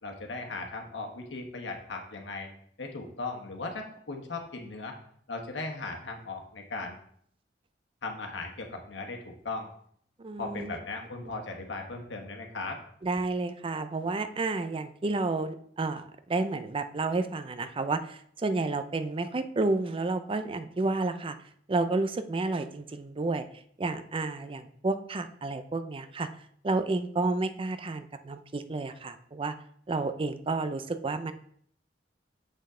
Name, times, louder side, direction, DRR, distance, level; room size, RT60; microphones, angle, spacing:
voice 1, 0.0-2.5 2.8-4.9 5.3-7.0 8.0-9.7 10.4-12.8, left 3 dB, 90° left, 2 dB, 1.3 m, -37 dB
voice 2, 10.2-10.8 13.0-21.4 21.7-23.5 23.8-26.3 26.6-29.5 29.9-31.3, right 3 dB, 30° right, 10 dB, 0.5 m, -31 dB
7.5 x 5.6 x 3.7 m, 0.65 s
head